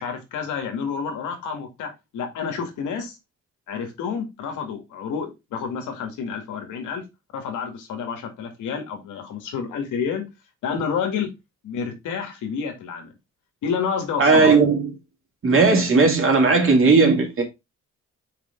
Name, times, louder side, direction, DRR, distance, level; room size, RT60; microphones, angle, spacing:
voice 1, 0.0-3.2 3.7-7.0 7.3-10.3 10.6-11.3 11.6-13.1 13.6-14.5, left 6 dB, 85° left, 2.0 m, -29 dB
voice 2, 14.2-14.9 15.4-17.4, right 4 dB, 45° right, 2.7 m, -16 dB
5.2 x 5.1 x 3.7 m
cardioid pair, 90°, 30 cm